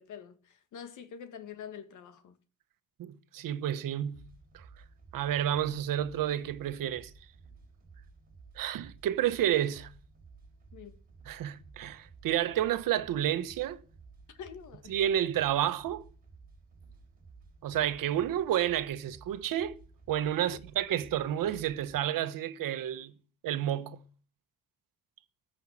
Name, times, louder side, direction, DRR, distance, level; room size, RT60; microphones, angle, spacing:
voice 1, 0.0-2.4 10.7-11.0 14.3-14.9 20.5-20.6, left 8 dB, 65° left, 1.8 m, -46 dB
voice 2, 3.0-4.2 4.5-4.7 5.1-7.1 8.5-9.9 11.3-13.8 14.9-16.0 17.6-19.7 20.1-23.1 23.4-24.0, right 11 dB, 90° right, 1.3 m, -30 dB
sound 1, 4.1-22.0, right 4 dB, 25° right, 4.3 m, -55 dB
14.5 x 5.7 x 9.8 m
cardioid pair, 175°, 32 cm